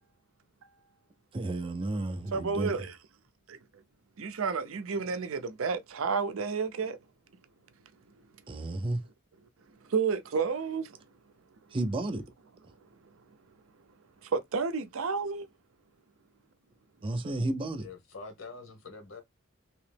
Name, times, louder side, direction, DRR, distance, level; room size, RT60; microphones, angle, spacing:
voice 1, 1.3-2.9 8.5-9.0 11.7-12.2 17.0-17.9, right 2 dB, 25° right, 0.4 m, -32 dB
voice 2, 2.3-2.9 3.5-3.6 4.2-7.0 9.9-11.0 14.2-15.4, right 5 dB, 75° right, 0.5 m, -31 dB
voice 3, 17.8-19.2, left 4 dB, 70° left, 1.1 m, -45 dB
3.0 x 2.9 x 3.3 m
head